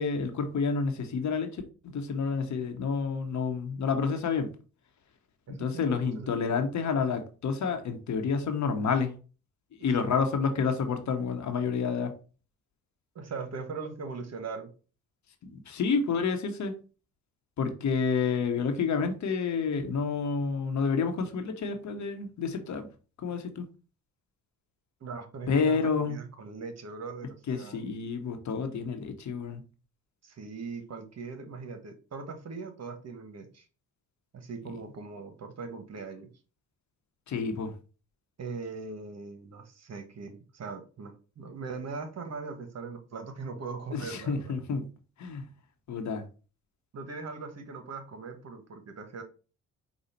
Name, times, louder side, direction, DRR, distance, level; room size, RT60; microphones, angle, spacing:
voice 1, 0.0-4.5 5.5-9.1 9.8-12.1 15.4-16.7 17.6-22.9 23.2-23.7 25.5-26.2 27.5-29.6 37.3-37.7 43.9-44.9 45.2-45.5 45.9-46.2, left 5 dB, 60° left, 1.1 m, -29 dB
voice 2, 5.5-6.7 9.8-9.9 13.1-14.7 25.0-27.8 30.2-33.6 34.3-36.3 38.4-44.5 46.9-49.2, right 4 dB, 50° right, 1.1 m, -40 dB
5.1 x 2.4 x 4.3 m
supercardioid pair, 60°, 33 cm